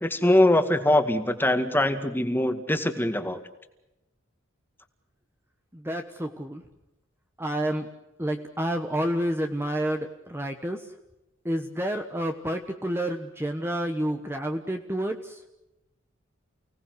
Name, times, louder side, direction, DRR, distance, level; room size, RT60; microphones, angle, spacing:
voice 1, 0.0-3.4, left 1 dB, 10° left, 8 dB, 2.0 m, -22 dB
voice 2, 5.8-6.6 7.4-7.9 8.2-10.8 11.4-15.2, right 1 dB, 10° right, 5 dB, 1.3 m, -29 dB
29.5 x 18.5 x 8.0 m, 0.94 s
head